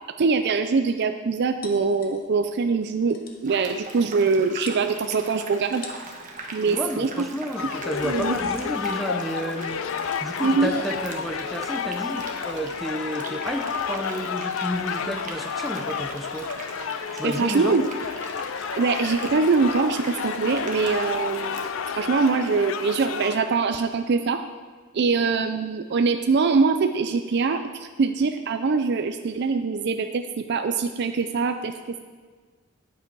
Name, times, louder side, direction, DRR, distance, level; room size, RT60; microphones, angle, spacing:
voice 1, 0.2-5.8 6.5-7.1 7.6-7.7 8.0-8.4 10.4-10.7 17.2-17.9 18.8-21.6 22.0-24.4 24.9-31.7, right 4 dB, 55° right, 7 dB, 0.4 m, -23 dB
sound 1, 1.6-2.5 2.8-2.9 3.1-3.5 4.3-4.4 4.7-5.3 5.7-6.2 7.3-14.0, left 4 dB, 50° left, 1.1 m, -46 dB
sound 2, 3.4-21.7, right 3 dB, 40° right, 1.2 m, -40 dB
voice 2, 6.7-9.8 10.2-16.5 17.1-17.8, equal, ahead, 4 dB, 0.7 m, -31 dB
sound 3, 7.6-23.4, left 7 dB, 75° left, 0.4 m, -31 dB
9.8 x 8.0 x 4.6 m, 1.5 s
head